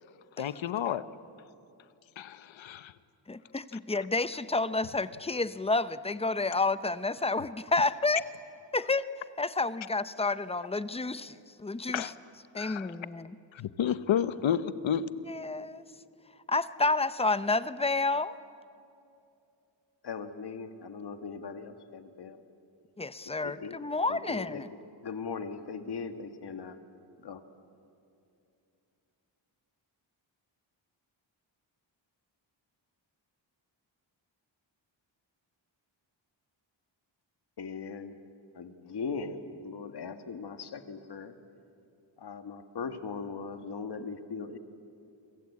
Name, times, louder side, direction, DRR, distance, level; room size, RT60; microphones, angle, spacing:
voice 1, 0.4-1.1 2.2-2.9 11.9-12.1 12.5-12.9 13.5-15.1, left 9 dB, 75° left, 14 dB, 1.0 m, -30 dB
voice 2, 3.3-8.2 8.7-9.1 9.4-12.1 12.5-13.4 15.3-15.8 16.5-18.4 23.0-24.7, left 3 dB, 15° left, 14 dB, 0.6 m, -30 dB
voice 3, 20.0-22.4 23.4-24.6 25.0-26.8 27.2-27.4 37.6-38.1 38.5-41.3 42.2-44.6, left 5 dB, 55° left, 8 dB, 1.7 m, -39 dB
28.5 x 25.0 x 8.5 m, 2.7 s
wide cardioid pair, 150°, 46 cm